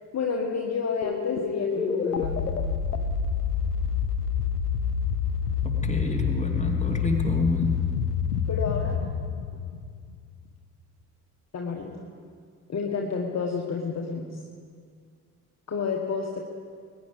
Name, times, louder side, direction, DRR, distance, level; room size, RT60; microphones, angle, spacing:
voice 1, 0.1-2.5 8.5-9.0 11.5-12.0 12.7-14.3 15.7-16.4, left 5 dB, 35° left, 1 dB, 1.5 m, -30 dB
sound 1, 1.0-10.4, left 7 dB, 85° left, 0.7 m, -28 dB
voice 2, 5.6-7.8, left 2 dB, 15° left, 1 dB, 2.5 m, -28 dB
21.0 x 10.0 x 5.3 m, 2.1 s
figure-of-eight pair, 40°, 45 cm